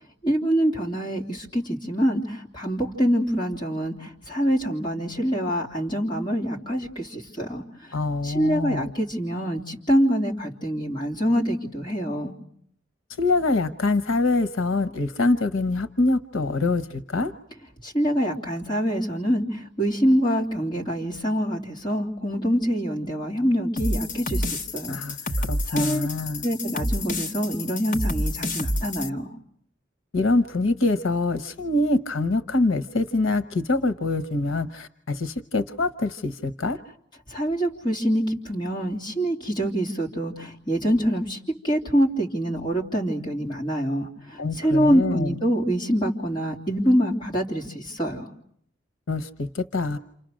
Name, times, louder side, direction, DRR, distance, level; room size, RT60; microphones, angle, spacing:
voice 1, 0.2-7.6 8.2-12.3 17.8-25.0 25.7-26.1 26.4-29.3 37.3-41.4 41.6-48.3, equal, 25° left, -2 dB, 3.2 m, -25 dB
voice 2, 7.9-8.9 13.2-17.3 24.9-26.4 30.1-36.8 44.4-45.3 49.1-50.0, left 2 dB, 85° left, 11 dB, 1.0 m, -25 dB
sound 1, 23.8-29.1, left 1 dB, 40° left, 1.0 m, -29 dB
29.5 x 28.0 x 6.4 m, 0.68 s
head